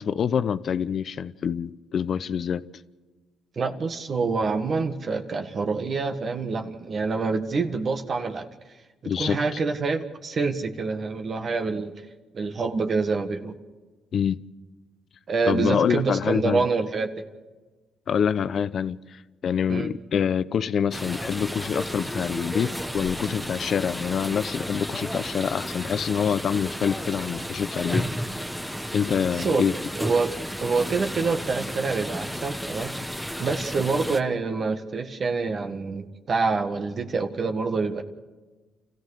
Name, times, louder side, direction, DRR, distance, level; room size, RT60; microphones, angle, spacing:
voice 1, 0.0-2.6 9.0-9.6 14.1-14.4 15.5-16.6 18.1-28.1 28.9-29.7, left 7 dB, 55° left, 0.8 m, -26 dB
voice 2, 3.5-8.5 9.2-11.9 12.3-13.5 15.3-17.2 19.7-19.9 29.4-29.6 30.0-38.0, right 4 dB, 45° right, 1.7 m, -26 dB
sound 1, 20.9-34.2, equal, ahead, 1.1 m, -33 dB
29.0 x 15.0 x 6.7 m
cardioid pair, 90°, 0 cm